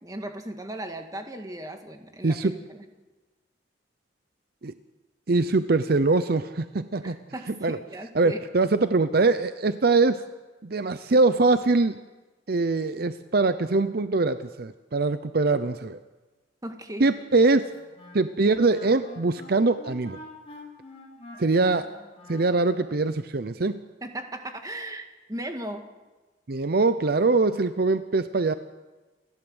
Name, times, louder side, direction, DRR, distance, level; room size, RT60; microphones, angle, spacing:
voice 1, 0.0-2.8 7.0-8.4 16.6-17.2 24.0-25.8, right 1 dB, 20° right, 5 dB, 1.8 m, -37 dB
voice 2, 5.3-7.2 7.6-7.8 8.1-10.2 10.6-12.0 12.5-16.0 17.0-17.7 18.1-20.2 21.4-21.9 22.3-23.8 26.5-28.5, right 3 dB, 55° right, 12 dB, 0.7 m, -23 dB
Wind instrument woodwind instrument, 17.7-23.0, left 1 dB, 35° left, 6.5 m, -46 dB
29.0 x 12.5 x 8.0 m, 1.2 s
head